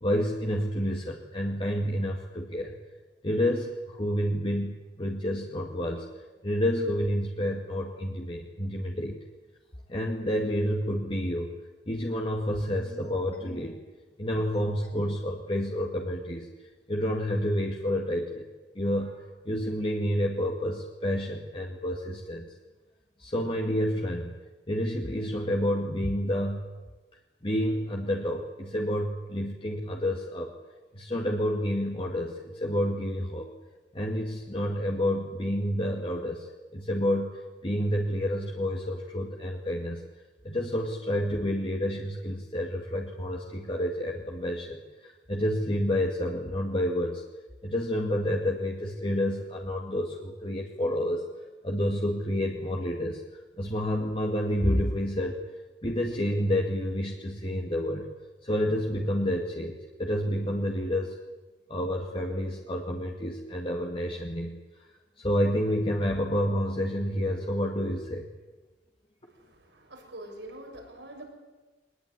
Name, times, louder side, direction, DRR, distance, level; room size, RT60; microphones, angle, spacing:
voice 1, 0.0-2.7 3.2-9.2 9.9-11.5 11.9-13.8 14.2-18.5 18.7-22.5 23.2-24.3 24.7-26.7 27.4-30.5 30.9-33.5 33.9-36.5 36.7-40.0 40.4-47.2 47.6-51.3 51.6-53.2 53.6-55.4 55.8-58.1 58.4-59.7 60.0-61.2 61.7-64.6 65.2-68.3, equal, 30° left, 0 dB, 2.2 m, -29 dB
voice 2, 69.2-71.3, right 1 dB, 85° right, 2 dB, 6.9 m, -45 dB
22.5 x 20.5 x 10.0 m, 1.2 s
head